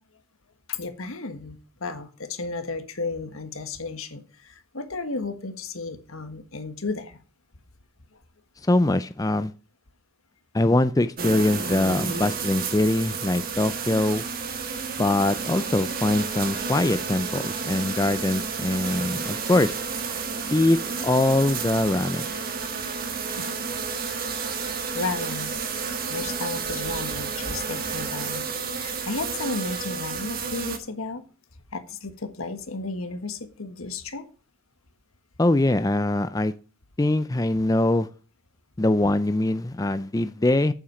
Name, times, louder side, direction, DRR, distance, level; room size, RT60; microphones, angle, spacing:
voice 1, 0.7-7.2 20.6-20.7 23.1-23.5 24.2-24.4 24.9-28.5 28.7-31.2 31.7-34.2, left 3 dB, 90° left, 8 dB, 1.6 m, -33 dB
voice 2, 8.7-9.5 10.5-14.2 15.0-19.7 20.5-22.2 35.4-36.5 37.0-38.1 38.8-40.7, left 2 dB, 15° left, 12 dB, 0.4 m, -23 dB
sound 1, 11.2-30.8, right 5 dB, 45° right, 1.6 m, -31 dB
8.8 x 7.3 x 6.3 m, 0.38 s
head